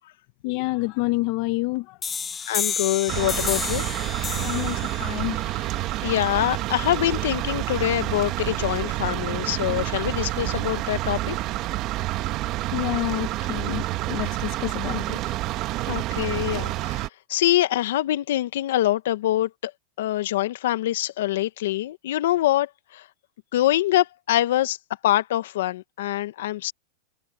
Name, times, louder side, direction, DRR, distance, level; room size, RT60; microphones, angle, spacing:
voice 1, 0.4-1.8 4.4-5.4 12.7-15.2, left 22 dB, 50° left, 1.1 m, -28 dB
sound 1, 2.0-7.4, left 6 dB, 20° left, 1.2 m, -32 dB
voice 2, 2.5-3.8 5.5-5.6 6.0-11.4 15.9-19.7 20.0-23.0 23.5-24.8 25.0-26.7, left 14 dB, 70° left, 1.4 m, -24 dB
sound 2, 3.1-17.1, right 17 dB, 40° right, 1.4 m, -28 dB
supercardioid pair, 135°, 0 cm